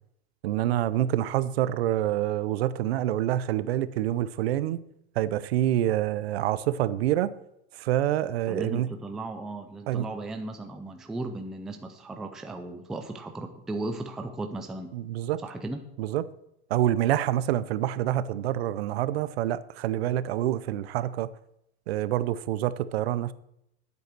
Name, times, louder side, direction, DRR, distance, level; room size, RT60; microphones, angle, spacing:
voice 1, 0.4-4.8 5.2-7.3 7.7-8.9 9.9-10.1 14.9-15.4 16.0-16.3 16.7-21.3 21.9-23.3, right 12 dB, 70° right, 0.7 m, -27 dB
voice 2, 8.5-14.9 15.4-15.8, right 2 dB, ahead, 0.3 m, -36 dB
9.3 x 8.3 x 6.0 m
supercardioid pair, 160°, 32 cm